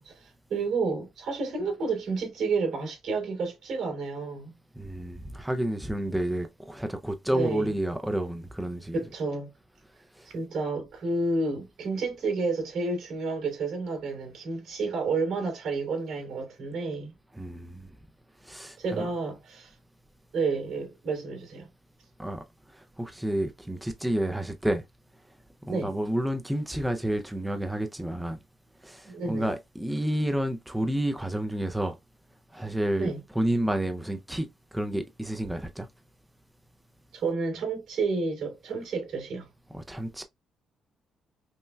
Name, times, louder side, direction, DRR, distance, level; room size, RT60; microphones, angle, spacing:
voice 1, 0.0-4.5 7.3-7.7 8.9-9.5 10.2-17.1 18.8-19.8 20.3-21.7 25.7-25.9 29.0-29.5 33.0-33.2 37.1-39.5, right 3 dB, 75° right, 2.6 m, -30 dB
voice 2, 4.8-9.0 10.2-10.3 17.3-17.9 18.4-19.1 22.2-22.4 22.7-24.8 25.6-28.4 28.8-32.0 32.5-33.1 33.4-35.9 39.7-40.2, right 1 dB, 5° right, 0.4 m, -30 dB
5.4 x 2.2 x 2.2 m
cardioid pair, 90°, 0 cm